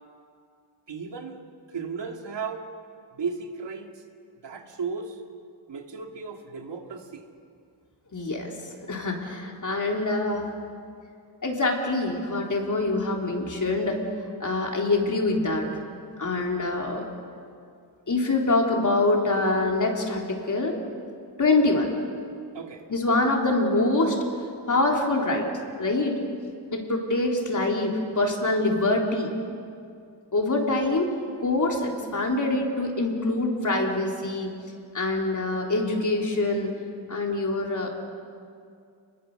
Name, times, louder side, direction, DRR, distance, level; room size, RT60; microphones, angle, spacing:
voice 1, 0.9-1.4 1.7-2.7 3.1-4.0 4.4-5.2 5.7-7.3 22.5-22.8, right 5 dB, 70° right, 3 dB, 2.3 m, -35 dB
voice 2, 8.1-8.5 8.9-10.5 11.4-14.0 14.4-15.7 16.2-17.0 18.1-20.7 21.4-21.9 22.9-24.2 24.7-25.5 25.8-26.2 26.7-29.3 30.3-31.1 31.4-34.5 34.9-36.7 37.1-37.9, left 2 dB, 45° left, 0 dB, 3.5 m, -25 dB
29.5 x 21.5 x 6.6 m, 2.4 s
wide cardioid pair, 125°, 43 cm